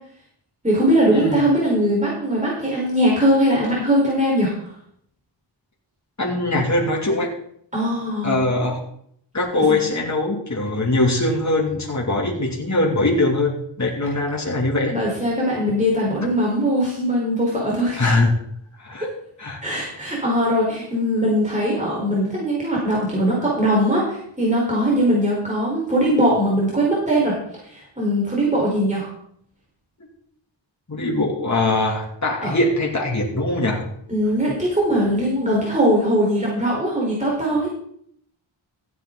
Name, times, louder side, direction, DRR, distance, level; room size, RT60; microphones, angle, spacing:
voice 1, 0.6-4.5 7.7-8.4 9.5-9.8 14.9-18.1 19.6-27.4 27.6-29.1 32.4-32.5 34.1-37.7, equal, 15° right, -5 dB, 4.9 m, -20 dB
voice 2, 6.2-7.3 8.2-8.8 9.3-14.9 18.0-18.3 18.8-19.1 19.4-19.6 30.9-33.8, left 2 dB, 35° left, -2 dB, 3.0 m, -21 dB
15.5 x 9.3 x 4.1 m, 0.67 s
wide cardioid pair, 65°, 46 cm